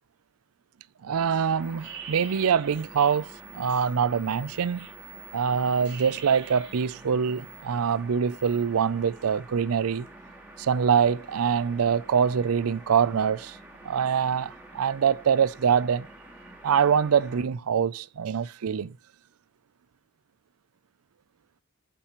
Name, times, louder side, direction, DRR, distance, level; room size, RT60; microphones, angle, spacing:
voice 1, 1.0-3.3 3.5-4.9 5.3-10.1 10.6-13.6 13.8-16.1 16.6-18.9, right 7 dB, 85° right, 0.5 m, -24 dB
sound 1, 1.1-17.4, right 1 dB, 10° right, 2.8 m, -48 dB
sound 2, 1.6-7.7 8.0-8.7, right 6 dB, 50° right, 3.5 m, -46 dB
14.5 x 5.8 x 3.0 m
head